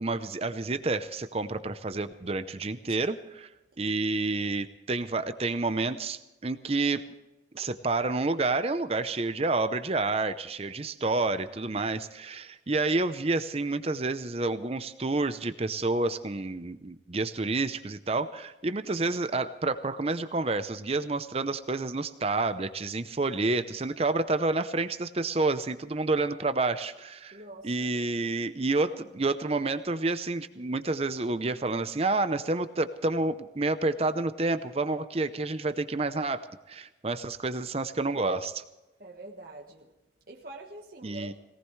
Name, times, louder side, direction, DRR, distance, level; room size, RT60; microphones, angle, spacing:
voice 1, 0.0-3.5 3.8-7.1 7.5-27.4 27.6-38.6 41.0-41.3, right 3 dB, 35° right, 11 dB, 0.7 m, -29 dB
voice 2, 27.3-27.8 39.0-39.9 40.3-41.3, right 2 dB, 50° right, -1 dB, 1.4 m, -44 dB
21.5 x 18.0 x 3.2 m, 1.0 s
head